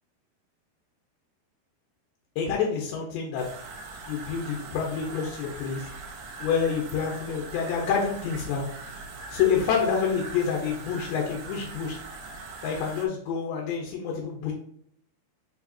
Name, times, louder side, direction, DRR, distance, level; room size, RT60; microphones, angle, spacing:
voice 1, 2.4-3.4 4.1-5.9 6.4-8.7 9.3-12.0 12.6-14.5, left 6 dB, 85° left, 0 dB, 3.4 m, -27 dB
sound 1, 3.4-13.1, right 3 dB, 70° right, 3.3 m, -41 dB
7.2 x 5.0 x 2.7 m, 0.66 s
omnidirectional pair, 5.0 m